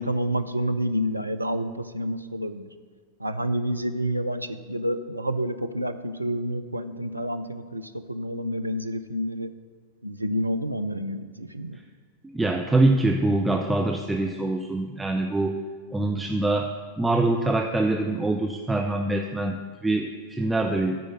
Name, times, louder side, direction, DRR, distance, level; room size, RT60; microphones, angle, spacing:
voice 1, 0.0-2.7 3.2-9.5 10.0-11.8, equal, 85° right, 9 dB, 0.4 m, -29 dB
voice 2, 12.3-15.6 15.9-16.7 17.0-21.0, right 2 dB, 10° right, 3 dB, 0.5 m, -24 dB
9.3 x 5.1 x 7.8 m, 1.5 s
figure-of-eight pair, 90°, 0 cm